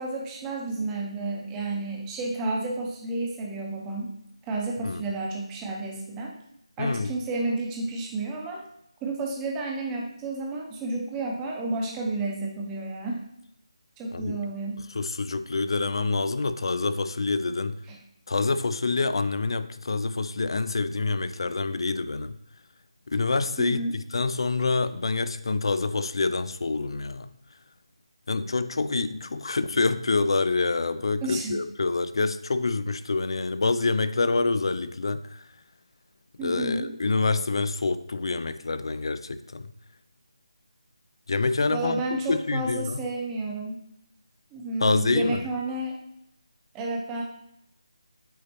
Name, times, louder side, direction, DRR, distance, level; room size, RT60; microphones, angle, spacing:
voice 1, 0.0-4.1 4.4-6.3 6.8-8.6 9.0-13.2 14.0-14.8 17.9-18.0 23.6-24.0 31.2-31.6 36.4-36.9 41.7-43.8 44.5-45.9 46.7-47.2, right 2 dB, 10° right, -1 dB, 0.6 m, -31 dB
voice 2, 6.8-7.1 14.1-14.4 14.9-17.8 18.3-22.4 23.1-27.3 28.3-35.4 36.4-39.7 41.3-43.0 44.8-45.5, left 3 dB, 55° left, 12 dB, 0.4 m, -26 dB
8.5 x 4.0 x 2.9 m, 0.76 s
figure-of-eight pair, 170°, 3 cm